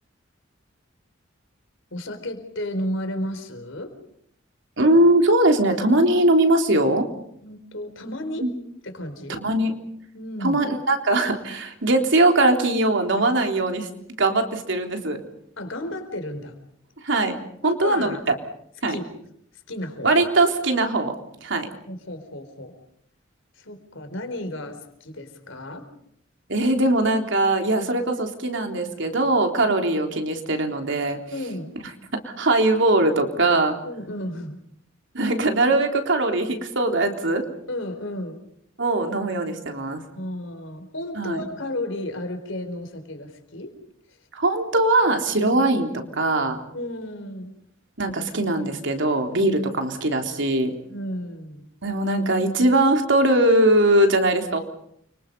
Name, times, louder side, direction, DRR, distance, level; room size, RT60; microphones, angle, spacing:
voice 1, 1.9-3.9 7.4-8.5 8.8-9.4 10.1-10.6 15.6-16.5 17.6-18.2 18.9-19.0 19.5-20.1 21.9-22.8 23.6-25.9 31.3-31.7 33.8-34.6 37.7-38.4 40.2-43.7 44.1-44.2 46.7-47.5 50.9-51.7, left 1 dB, 70° left, 7 dB, 4.6 m, -33 dB
voice 2, 4.8-7.1 8.4-8.5 9.4-9.7 10.4-13.9 14.2-15.2 17.0-17.4 17.6-18.2 18.8-19.0 20.0-21.1 21.4-21.7 26.5-31.2 32.2-33.8 35.1-37.4 38.8-40.0 41.2-41.4 44.3-46.6 48.0-50.7 51.8-54.6, right 2 dB, 65° right, 4 dB, 3.6 m, -21 dB
29.5 x 25.0 x 5.4 m, 0.70 s
head